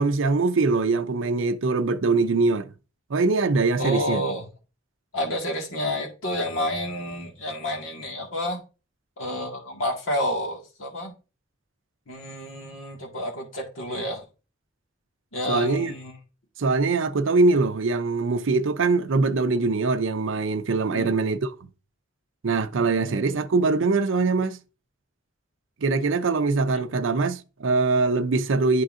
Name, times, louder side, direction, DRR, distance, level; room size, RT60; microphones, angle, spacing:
voice 1, 0.0-2.7 3.1-4.3 15.5-15.9 16.6-21.5 22.4-24.6 25.8-28.8, right 3 dB, 70° right, 0.5 m, -22 dB
voice 2, 3.8-4.5 5.1-8.6 9.2-11.1 12.1-14.2 15.3-16.1 20.9-21.2 22.8-23.3 26.7-26.8, left 1 dB, 90° left, 1.7 m, -30 dB
11.0 x 3.8 x 2.5 m
head